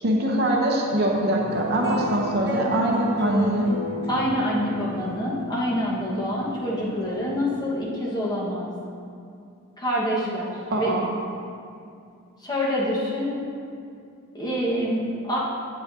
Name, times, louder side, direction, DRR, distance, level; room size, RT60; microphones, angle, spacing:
voice 1, 0.0-3.7 10.7-11.1, right 1 dB, 45° right, -1 dB, 0.8 m, -23 dB
sound 1, 1.0-7.6, equal, 20° right, 1.6 m, -31 dB
voice 2, 4.1-8.7 9.8-10.9 12.4-13.4 14.3-15.4, equal, 20° left, -7 dB, 1.4 m, -26 dB
8.5 x 8.3 x 2.7 m, 2.4 s
head